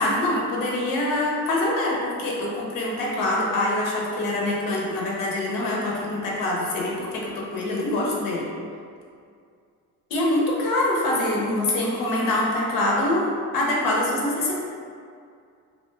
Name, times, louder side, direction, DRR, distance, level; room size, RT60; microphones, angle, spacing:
voice 1, 0.0-8.5 10.1-14.5, left 1 dB, 70° left, -3 dB, 0.6 m, -24 dB
2.4 x 2.2 x 2.9 m, 2.3 s
cardioid pair, 180°, 35 cm